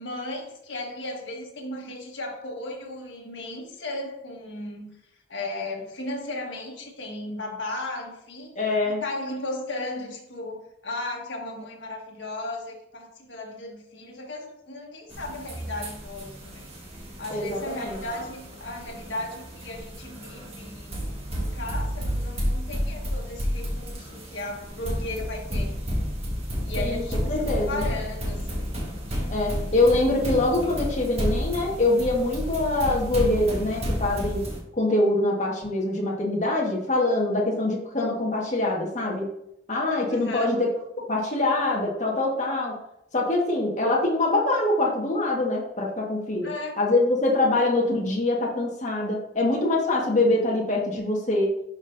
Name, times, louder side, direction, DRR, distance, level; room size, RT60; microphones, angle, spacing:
voice 1, 0.0-5.0 5.3-8.6 9.0-16.6 17.2-21.0 21.3-26.0 26.6-28.7 29.1-29.2 40.1-40.7 46.4-46.7, left 2 dB, 85° left, 0 dB, 1.5 m, -35 dB
voice 2, 8.6-9.0 17.3-18.0 26.8-27.8 29.3-34.4 34.7-39.3 39.7-40.7 41.1-42.8 43.1-46.5 46.8-51.6, left 2 dB, 40° left, -2 dB, 1.6 m, -24 dB
sound 1, 15.1-34.6, equal, 35° right, 1.5 m, -31 dB
11.0 x 4.1 x 2.7 m, 0.78 s
head